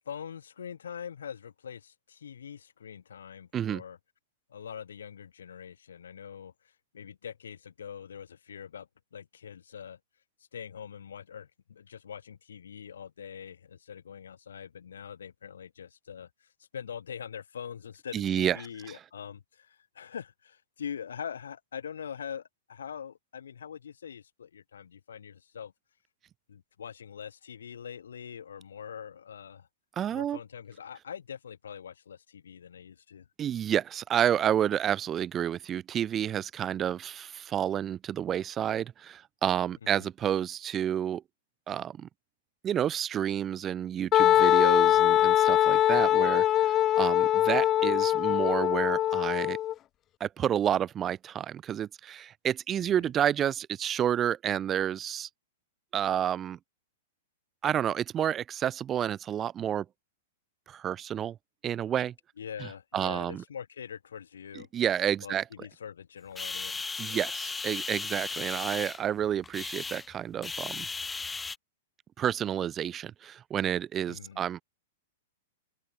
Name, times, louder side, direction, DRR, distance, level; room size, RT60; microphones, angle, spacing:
voice 1, 0.1-4.0 4.5-6.5 6.9-10.0 10.5-16.5 16.7-25.7 26.5-29.7 30.1-33.3 52.8-53.1 62.4-64.7 65.2-67.2 74.1-74.4, left 8 dB, 90° left, 4.4 m, -43 dB
voice 2, 18.1-18.6 30.0-30.4 33.4-41.2 41.7-42.1 42.6-49.6 50.2-55.3 55.9-56.6 57.6-59.9 60.7-61.4 61.6-62.1 62.9-63.4 64.7-65.4 67.0-70.9 72.2-74.6, right 10 dB, 20° right, 1.6 m, -30 dB
Wind instrument woodwind instrument, 44.1-49.7, left 12 dB, 25° left, 1.2 m, -23 dB
sound 1, 66.3-71.6, left 4 dB, 10° left, 2.4 m, -36 dB
open air
hypercardioid pair, 140°, 0 cm